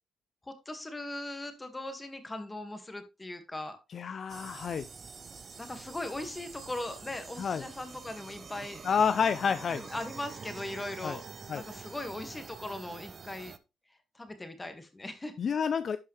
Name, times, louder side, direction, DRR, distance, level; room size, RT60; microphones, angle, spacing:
voice 1, 0.7-3.8 5.6-8.8 9.7-11.2 11.5-13.5 14.2-15.3, left 1 dB, 15° left, 8 dB, 1.9 m, -39 dB
voice 2, 3.9-4.9 7.4-7.6 8.8-9.8 11.0-11.2 11.5-11.6 15.4-16.0, left 6 dB, 50° left, 13 dB, 0.5 m, -29 dB
sound 1, 4.3-13.6, right 5 dB, 40° right, 0.7 m, -47 dB
11.5 x 5.5 x 3.3 m, 0.27 s
cardioid pair, 90°, 0 cm